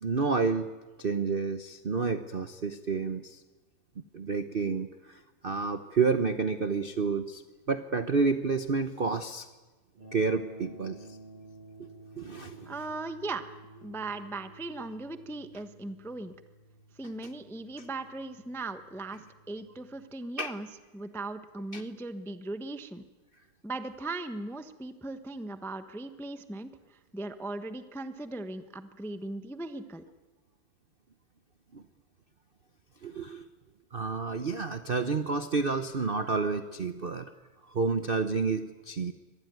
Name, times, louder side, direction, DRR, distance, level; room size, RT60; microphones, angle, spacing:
voice 1, 0.0-3.4 4.1-7.4 7.7-9.5 10.1-11.0 12.1-12.7 20.4-20.6 21.7-21.8 31.7-31.8 33.0-33.4 33.9-37.3 37.7-39.1, right 4 dB, 65° right, 10 dB, 0.5 m, -30 dB
sound 1, 10.0-20.1, right 1 dB, 80° right, 7.2 m, -52 dB
voice 2, 12.7-13.5 13.8-16.3 17.0-20.7 20.9-23.0 23.6-30.0, right 2 dB, 5° left, 9 dB, 0.3 m, -38 dB
24.5 x 19.5 x 9.5 m, 1.2 s
omnidirectional pair, 2.4 m